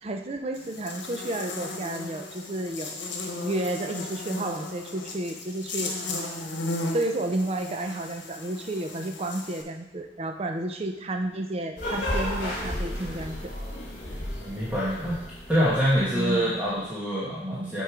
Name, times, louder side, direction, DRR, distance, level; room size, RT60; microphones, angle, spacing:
voice 1, 0.0-3.0 3.4-5.9 6.9-13.5 16.1-16.6, right 1 dB, 35° right, 5 dB, 0.5 m, -31 dB
Buzz, 0.5-9.6, left 2 dB, 75° left, 1.1 m, -35 dB
sound 1, 11.8-16.4, left 1 dB, 45° left, 1.8 m, -33 dB
voice 2, 14.4-15.2 15.5-17.8, equal, 10° right, -8 dB, 1.1 m, -25 dB
6.6 x 4.6 x 4.7 m, 0.87 s
head